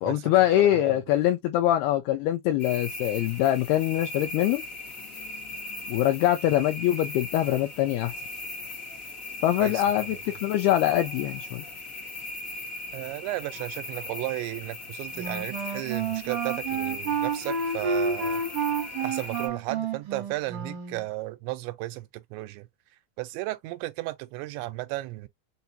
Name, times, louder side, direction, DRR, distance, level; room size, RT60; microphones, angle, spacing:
voice 1, 0.0-4.6 5.9-8.1 9.4-11.6, left 13 dB, 80° left, 2.3 m, -24 dB
voice 2, 0.5-1.0 9.6-10.2 12.9-18.4 19.0-22.7 23.2-25.3, right 18 dB, 85° right, 3.1 m, -34 dB
sound 1, 2.6-19.5, left 2 dB, 65° left, 0.8 m, -38 dB
Wind instrument woodwind instrument, 15.2-21.0, right 5 dB, 55° right, 2.7 m, -30 dB
6.8 x 2.8 x 2.7 m
omnidirectional pair, 5.1 m